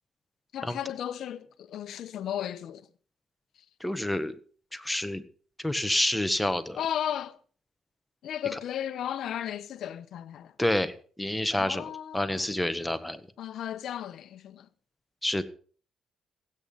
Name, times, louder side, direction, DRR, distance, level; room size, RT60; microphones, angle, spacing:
voice 1, 0.5-2.9 6.8-7.4 8.2-10.5 11.5-12.5 13.4-14.7, left 10 dB, 70° left, 1.0 m, -35 dB
voice 2, 3.8-4.3 4.7-5.2 5.6-6.8 10.6-11.8 12.1-13.2 15.2-15.4, left 1 dB, 5° left, 1.5 m, -28 dB
16.5 x 8.8 x 5.6 m
cardioid pair, 90°, 0 cm